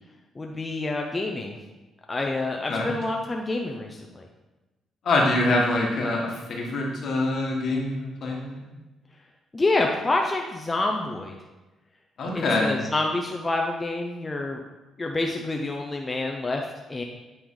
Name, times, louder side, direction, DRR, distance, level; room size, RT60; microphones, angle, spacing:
voice 1, 0.4-1.6 2.1-4.3 9.5-11.4 12.3-14.6 15.0-17.0, left 2 dB, 25° left, 1 dB, 0.6 m, -27 dB
voice 2, 5.0-8.7 12.2-12.8, left 2 dB, 60° left, -1 dB, 1.5 m, -25 dB
8.7 x 3.4 x 3.7 m, 1.1 s
cardioid pair, 90°, 0 cm